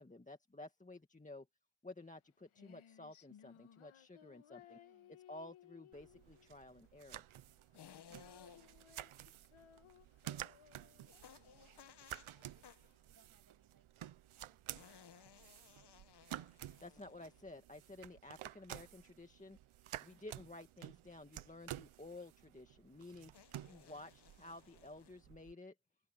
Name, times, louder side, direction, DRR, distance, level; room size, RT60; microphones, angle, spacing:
voice 1, 0.0-1.5 1.8-4.8 5.3-7.2 16.8-19.6 20.0-23.3 23.6-25.7, left 2 dB, 15° left, 1.9 m, -53 dB
Female singing, 2.0-13.0, left 10 dB, 85° left, 1.8 m, -63 dB
voice 2, 4.7-5.2 8.4-8.9 10.6-12.5 13.0-13.9 14.4-16.0, right 5 dB, 50° right, 7.1 m, -74 dB
sound 1, 5.9-25.5, right 12 dB, 90° right, 0.9 m, -52 dB
sound 2, 7.7-8.9 11.1-13.0 14.7-17.6 20.0-20.4 23.3-25.2, left 8 dB, 55° left, 1.2 m, -61 dB
open air
cardioid pair, 95°, 47 cm